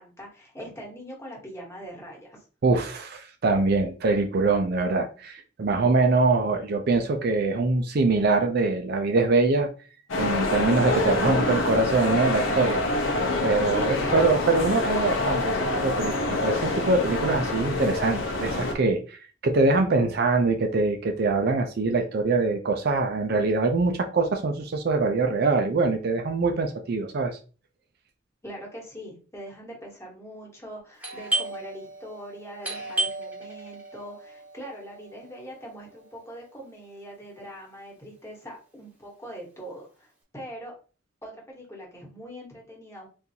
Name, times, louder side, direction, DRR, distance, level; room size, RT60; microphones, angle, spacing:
voice 1, 0.0-2.4 13.7-14.4 28.4-40.7 41.2-43.1, equal, 15° left, -2 dB, 1.1 m, -42 dB
voice 2, 2.6-9.7 10.2-12.8 13.4-27.4, right 3 dB, 55° right, 4 dB, 0.4 m, -24 dB
sound 1, 10.1-18.7, left 2 dB, 85° left, 0.8 m, -26 dB
Doorbell, 31.0-36.4, right 2 dB, 10° right, 0.9 m, -34 dB
3.7 x 2.6 x 2.8 m, 0.37 s
head